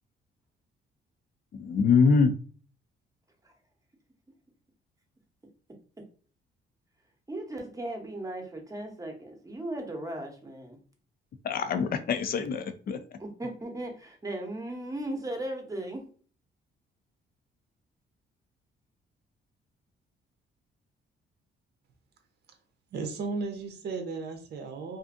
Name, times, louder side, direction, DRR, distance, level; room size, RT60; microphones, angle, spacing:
voice 1, 1.5-2.3 11.4-13.0, left 5 dB, 50° left, 9 dB, 0.4 m, -24 dB
voice 2, 7.3-10.8 13.2-16.1, right 1 dB, 15° right, 2 dB, 0.7 m, -37 dB
voice 3, 22.9-25.0, right 4 dB, 55° right, 4 dB, 0.6 m, -35 dB
2.5 x 2.5 x 2.5 m, 0.42 s
cardioid pair, 90°, 20 cm